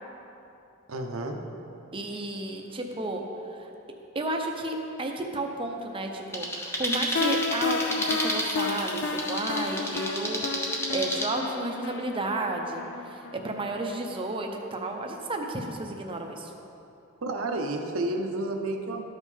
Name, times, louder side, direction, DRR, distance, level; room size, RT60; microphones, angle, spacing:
voice 1, 0.9-1.4 17.2-19.0, right 2 dB, 75° right, 4 dB, 0.8 m, -30 dB
voice 2, 1.9-3.2 3.5-3.7 4.1-16.5, right 2 dB, 25° right, 2 dB, 0.7 m, -32 dB
sound 1, 6.3-11.3, equal, 10° left, 0.8 m, -31 dB
sound 2, 7.2-13.9, left 4 dB, 55° left, 0.4 m, -32 dB
13.0 x 5.3 x 3.3 m, 2.8 s
head